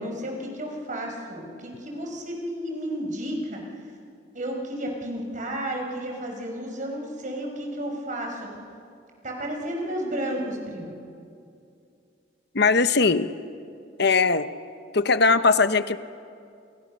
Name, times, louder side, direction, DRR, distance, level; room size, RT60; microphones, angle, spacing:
voice 1, 0.0-3.6 4.3-8.5 9.2-10.9, right 1 dB, 45° right, 1 dB, 5.6 m, -32 dB
voice 2, 12.5-13.3 14.0-14.5 14.9-16.0, left 4 dB, 60° left, 12 dB, 0.9 m, -20 dB
28.5 x 28.5 x 6.7 m, 2.4 s
head